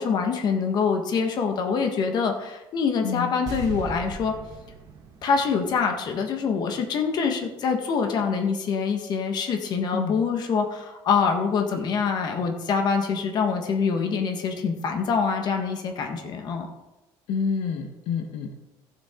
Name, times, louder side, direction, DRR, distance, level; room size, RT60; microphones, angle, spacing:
voice 1, 0.0-4.3 5.2-16.7, left 5 dB, 50° left, 4 dB, 1.4 m, -25 dB
voice 2, 3.0-3.3 9.9-10.2 17.3-18.5, left 5 dB, 80° left, 5 dB, 1.2 m, -28 dB
sound 1, 3.5-6.7 6.9-7.0, right 4 dB, 40° right, 1.7 m, -39 dB
15.0 x 7.4 x 3.8 m, 1.0 s
cardioid pair, 145°, 9 cm